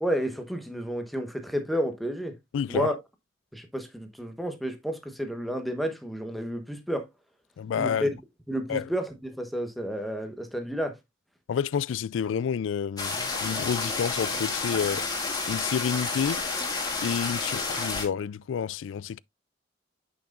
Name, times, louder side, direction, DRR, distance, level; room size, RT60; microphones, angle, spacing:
voice 1, 0.0-2.3 2.7-2.9 3.5-7.1 7.8-8.1 8.5-11.0, equal, ahead, 1.1 m, -31 dB
voice 2, 2.5-2.9 7.6-8.1 8.7-8.9 11.5-15.0 15.5-16.4 17.0-19.2, left 7 dB, 80° left, 0.3 m, -29 dB
sound 1, 13.0-18.1, left 3 dB, 20° left, 2.2 m, -30 dB
8.7 x 6.1 x 2.4 m
head